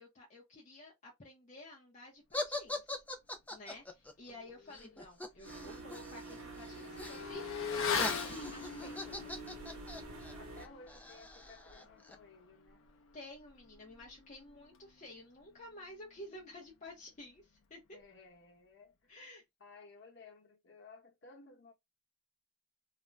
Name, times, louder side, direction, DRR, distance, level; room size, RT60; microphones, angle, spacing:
voice 1, 0.0-3.0 3.5-9.3 13.1-18.0 19.1-19.4, left 1 dB, 35° left, 0.7 m, -52 dB
sound 1, 2.3-6.3 6.6-7.2 7.5-12.2, left 2 dB, 5° left, 0.4 m, -42 dB
voice 2, 4.2-5.0 10.4-12.8 17.9-19.3 19.6-21.7, left 3 dB, 55° left, 1.0 m, -57 dB
Motorcycle / Accelerating revving vroom, 4.7-4.8 5.2-15.2 15.5-15.6, left 6 dB, 75° left, 0.6 m, -42 dB
sound 2, 5.4-10.7, right 3 dB, 85° right, 0.9 m, -48 dB
2.5 x 2.1 x 3.1 m
head